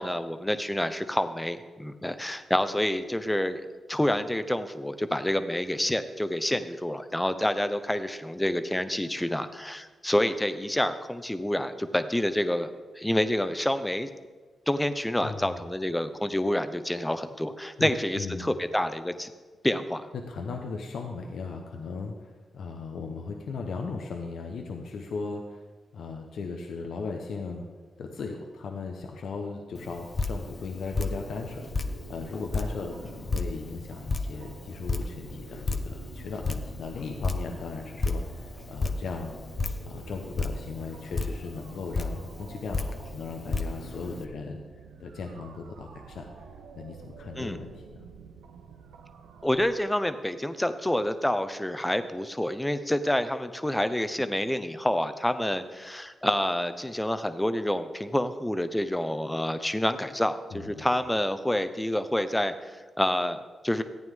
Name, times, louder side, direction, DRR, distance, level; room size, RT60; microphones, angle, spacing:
voice 1, 0.0-3.6 3.9-14.1 14.7-19.3 19.6-20.1 47.4-47.6 49.4-63.8, left 1 dB, 10° left, 11 dB, 0.9 m, -28 dB
voice 2, 15.2-15.6 17.8-17.9 18.1-18.5 20.1-25.6 25.9-27.7 28.0-39.3 39.8-44.6 45.0-46.5 46.8-48.0 60.5-60.9, left 4 dB, 70° left, 3 dB, 0.9 m, -37 dB
Drip, 29.7-44.2, left 3 dB, 45° left, 0.9 m, -34 dB
sound 1, 31.1-49.7, right 6 dB, 85° right, 0.7 m, -49 dB
14.0 x 9.1 x 3.7 m, 1.4 s
supercardioid pair, 40°, 0 cm